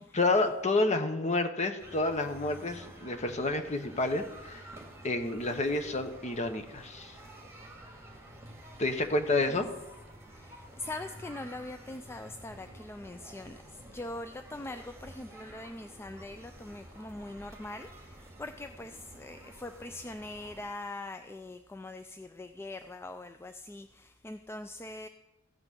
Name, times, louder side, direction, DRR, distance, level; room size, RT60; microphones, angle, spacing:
voice 1, 0.0-4.7 5.0-7.1 8.8-9.7, left 2 dB, 35° left, 7 dB, 1.0 m, -29 dB
sound 1, 1.8-20.6, right 1 dB, 15° right, 2.1 m, -50 dB
voice 2, 10.3-25.1, left 2 dB, 10° left, 8 dB, 0.3 m, -42 dB
15.0 x 5.9 x 6.8 m, 0.99 s
head